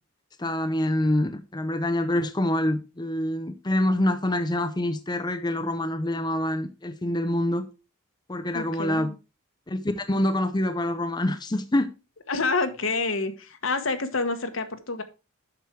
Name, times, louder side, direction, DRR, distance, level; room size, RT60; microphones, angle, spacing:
voice 1, 0.4-7.6 8.3-9.1 9.7-11.9, left 1 dB, 20° left, 0.6 m, -26 dB
voice 2, 8.5-9.1 12.3-15.0, left 3 dB, 70° left, 1.3 m, -28 dB
8.2 x 6.3 x 4.6 m
head